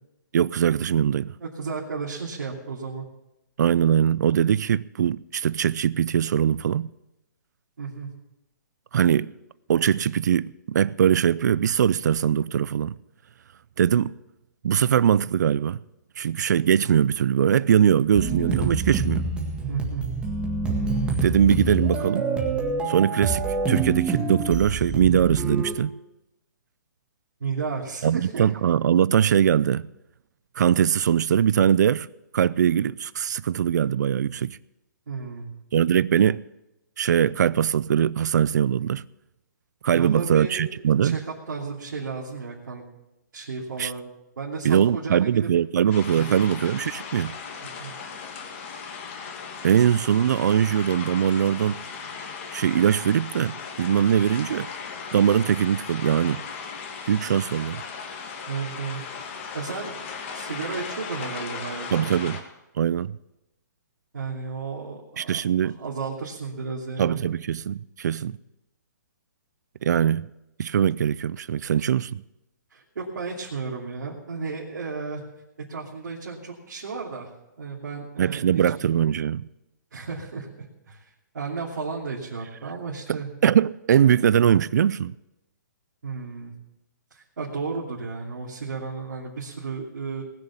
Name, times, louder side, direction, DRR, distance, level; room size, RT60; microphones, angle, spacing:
voice 1, 0.3-1.3 3.6-6.9 8.9-9.3 9.7-12.9 13.8-14.1 14.6-15.8 16.2-19.3 21.2-22.3 22.9-23.4 23.7-25.9 28.0-29.9 30.6-32.1 32.3-34.6 35.7-36.4 37.0-39.0 39.8-41.2 43.8-43.9 44.6-47.4 49.6-51.8 52.5-54.7 55.1-56.4 57.1-57.8 61.9-62.4 62.8-63.2 65.2-65.8 67.0-68.4 69.8-70.3 70.6-72.2 78.2-79.5 83.1-85.1, right 9 dB, 65° right, 0.4 m, -21 dB
voice 2, 1.4-3.1 7.8-8.1 19.7-20.0 27.4-28.5 35.1-35.5 39.9-42.8 43.3-45.5 46.1-46.4 47.6-47.9 58.5-59.0 59.5-59.9 60.3-62.2 64.1-67.3 72.7-75.2 75.7-77.3 77.6-78.9 79.9-80.5 80.9-83.3 86.0-86.5 87.1-90.2, right 5 dB, 80° right, 2.9 m, -33 dB
sound 1, 18.1-25.7, right 4 dB, 10° right, 1.8 m, -27 dB
sound 2, 45.9-62.4, left 6 dB, 40° left, 2.2 m, -37 dB
19.5 x 6.7 x 7.2 m
hypercardioid pair, 155°, 10 cm